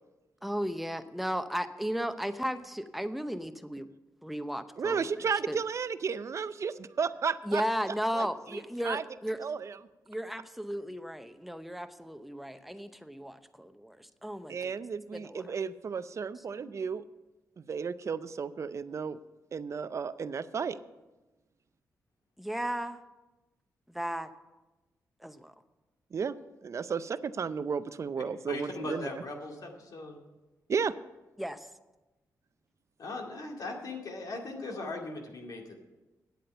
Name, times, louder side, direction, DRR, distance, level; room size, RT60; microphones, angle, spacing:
voice 1, 0.4-3.9 4.2-5.1 5.5-5.6 7.4-9.4 10.1-14.7 15.1-15.4 22.4-23.0 23.9-24.3 25.2-25.5 31.4-31.7, equal, ahead, 10 dB, 0.8 m, -35 dB
voice 2, 4.8-7.6 8.1-9.0 9.4-9.8 14.5-17.0 17.6-19.2 19.5-20.8 26.1-26.3 26.6-29.2 30.7-30.9, right 6 dB, 50° right, 14 dB, 0.5 m, -33 dB
voice 3, 28.5-30.2 33.0-35.8, left 2 dB, 65° left, 1 dB, 2.2 m, -39 dB
9.5 x 8.4 x 6.8 m, 1.1 s
cardioid pair, 80°, 7 cm